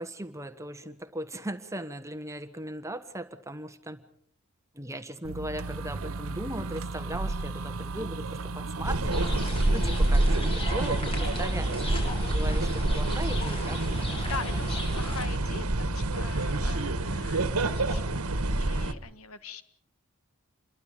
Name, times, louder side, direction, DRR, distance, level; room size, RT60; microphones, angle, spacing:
voice 1, 0.0-4.0 4.7-14.6, right 1 dB, 15° right, 11 dB, 1.3 m, -38 dB
sound 1, 5.2-10.1, right 3 dB, 70° right, 0.8 m, -35 dB
sound 2, 8.8-18.9, right 2 dB, 85° right, 1.5 m, -27 dB
sound 3, 9.1-15.3, left 1 dB, 25° left, 5.8 m, -38 dB
voice 2, 14.1-19.6, left 4 dB, 75° left, 11 dB, 1.6 m, -42 dB
28.0 x 22.5 x 5.1 m, 0.66 s
head